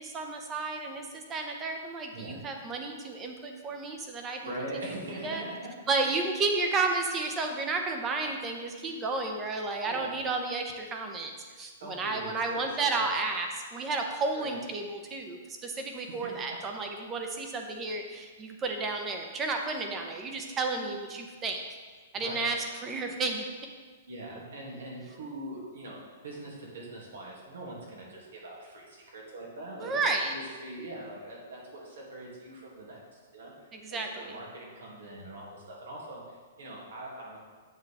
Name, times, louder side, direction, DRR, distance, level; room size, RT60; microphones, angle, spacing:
voice 1, 0.0-4.9 5.2-5.4 5.9-11.3 11.6-21.6 22.1-23.4 29.8-30.3 33.7-34.4, right 3 dB, 15° right, 3 dB, 0.7 m, -32 dB
voice 2, 4.4-5.7 6.0-6.1 9.8-10.2 11.8-13.0 14.3-14.6 16.0-16.3 22.1-22.5 24.1-33.7 34.1-37.4, right 1 dB, 85° right, -3 dB, 2.5 m, -42 dB
8.1 x 6.7 x 3.5 m, 1.5 s
hypercardioid pair, 160°, 0 cm